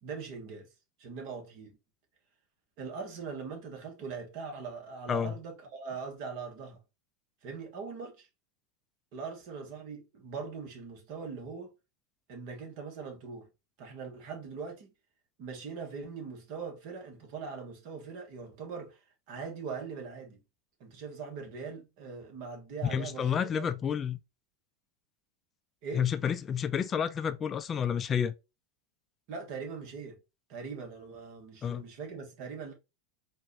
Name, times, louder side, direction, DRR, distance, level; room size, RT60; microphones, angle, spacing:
voice 1, 0.0-0.7 1.0-1.8 2.8-6.8 7.4-8.3 9.1-11.7 12.3-13.5 13.8-14.9 15.4-19.0 19.3-20.4 20.8-23.7 25.8-26.0 29.3-30.2 30.5-32.7, right 5 dB, 60° right, 1.5 m, -41 dB
voice 2, 22.9-24.2 25.9-28.3 31.6-31.9, left 8 dB, 30° left, 0.4 m, -30 dB
4.5 x 2.5 x 3.0 m
hypercardioid pair, 95°, 0 cm